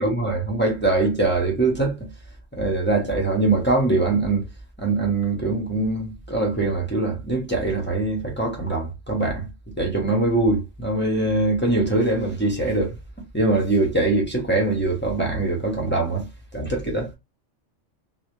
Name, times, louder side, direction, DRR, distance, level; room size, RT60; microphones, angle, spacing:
voice 1, 0.0-2.0 2.5-4.4 4.8-9.5 9.8-13.0 13.3-16.3 16.5-17.1, right 2 dB, 15° left, 0.4 m, -22 dB
2.1 x 2.0 x 2.9 m
omnidirectional pair, 1.3 m